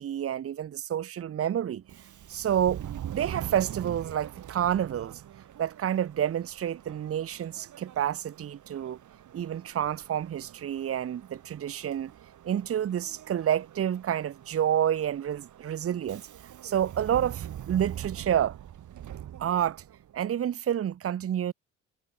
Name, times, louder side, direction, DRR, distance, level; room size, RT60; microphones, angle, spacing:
voice 1, 0.0-1.8 2.3-2.8 3.1-5.2 5.6-9.0 9.3-12.1 12.4-16.3 16.6-18.6 19.4-19.8 20.1-21.5, right 10 dB, 45° right, 0.9 m, -29 dB
Subway metro underground, 1.8-20.2, right 11 dB, 70° right, 7.2 m, -43 dB
cardioid pair, 85°, 31 cm